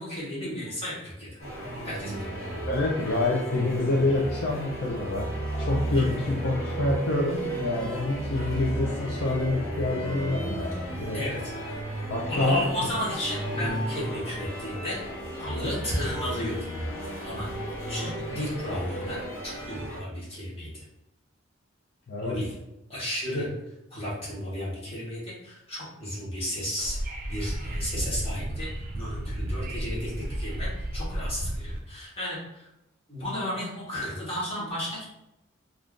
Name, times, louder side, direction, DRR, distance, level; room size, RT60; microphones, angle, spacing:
voice 1, 0.0-1.4 1.8-2.4 11.1-11.5 12.3-15.0 15.4-16.7 17.2-20.8 22.2-22.6 22.9-27.0 27.3-32.7 33.1-35.0, left 1 dB, 30° left, -7 dB, 1.0 m, -33 dB
sound 1, 1.4-20.0, right 1 dB, 85° left, 1.1 m, -34 dB
voice 2, 2.7-5.3 5.6-11.2 12.1-12.6 22.1-22.4, left 2 dB, 55° left, -3 dB, 0.4 m, -27 dB
Wind / Subway metro underground, 26.8-31.8, right 1 dB, 45° right, 0.5 m, -33 dB
2.5 x 2.3 x 3.6 m, 0.88 s
head